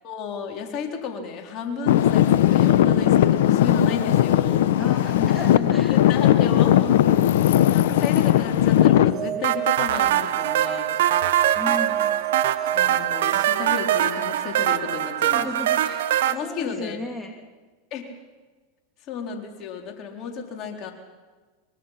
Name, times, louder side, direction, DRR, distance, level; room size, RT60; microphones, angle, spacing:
voice 1, 0.0-4.7 5.7-7.0 7.4-11.0 12.7-15.5 16.3-17.0 17.9-18.1 19.1-20.9, left 5 dB, 45° left, 2 dB, 4.0 m, -33 dB
Traffic noise roadway noise / Engine, 1.9-9.1, left 12 dB, 70° left, 1.0 m, -18 dB
voice 2, 4.8-6.0 11.5-12.2 15.3-17.4, equal, 5° left, 1 dB, 2.7 m, -34 dB
sound 1, 8.9-13.7, right 11 dB, 40° right, 1.2 m, -31 dB
sound 2, 9.4-16.3, right 12 dB, 70° right, 1.1 m, -23 dB
24.0 x 23.0 x 5.9 m, 1.3 s
hypercardioid pair, 95°, 0 cm